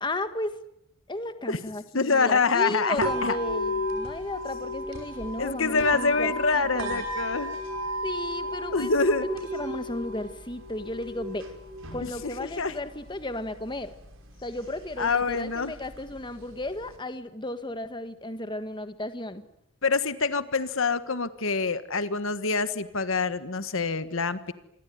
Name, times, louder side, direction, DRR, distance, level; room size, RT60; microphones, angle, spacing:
voice 1, 0.0-0.5 1.1-7.0 8.0-8.9 9.2-11.5 11.9-13.9 14.4-19.4, left 1 dB, 20° left, 10 dB, 1.6 m, -34 dB
voice 2, 1.9-3.4 5.4-7.5 8.7-9.3 12.0-12.7 15.0-15.7 19.8-24.5, left 4 dB, 65° left, 12 dB, 1.4 m, -26 dB
sound 1, 3.0-17.0, equal, 60° right, 5.6 m, -35 dB
27.5 x 21.5 x 9.6 m, 0.78 s
head